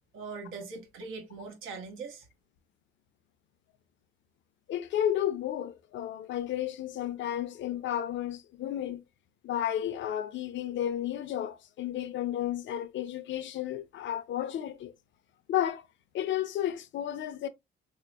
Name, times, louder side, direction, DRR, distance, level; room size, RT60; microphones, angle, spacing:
voice 1, 0.1-2.3, right 4 dB, 85° right, 1.1 m, -41 dB
voice 2, 4.7-9.0 9.4-14.9 15.5-15.9 16.1-17.5, left 11 dB, 70° left, 0.6 m, -32 dB
4.0 x 2.8 x 2.4 m
cardioid pair, 90°, 20 cm